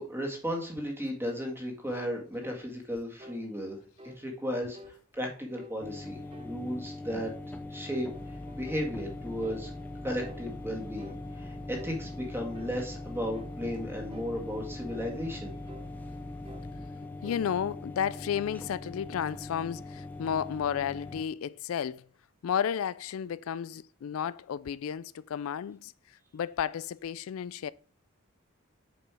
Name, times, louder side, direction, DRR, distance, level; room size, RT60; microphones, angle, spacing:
voice 1, 0.0-7.3 7.7-9.7 10.0-15.6, equal, 10° right, 2.0 m, -35 dB
sound 1, 2.4-2.7 3.2-3.4 4.0-4.2 4.7-5.0 5.5-5.8 6.3-6.6 7.1-7.3 7.9-8.9 9.4-9.7 10.2-10.4 11.0-11.2 11.8-12.0 12.5-12.8 13.3-13.6 14.1-14.3 14.9-15.1 15.7-15.9 16.4-16.7 17.2-17.5, left 1 dB, 25° right, 0.7 m, -49 dB
sound 2, 5.8-21.2, left 2 dB, 10° left, 0.6 m, -42 dB
sound 3, 8.1-16.9, equal, 25° left, 1.7 m, -46 dB
voice 2, 17.2-22.1 22.4-27.7, left 8 dB, 75° left, 0.3 m, -32 dB
7.6 x 5.2 x 4.8 m
head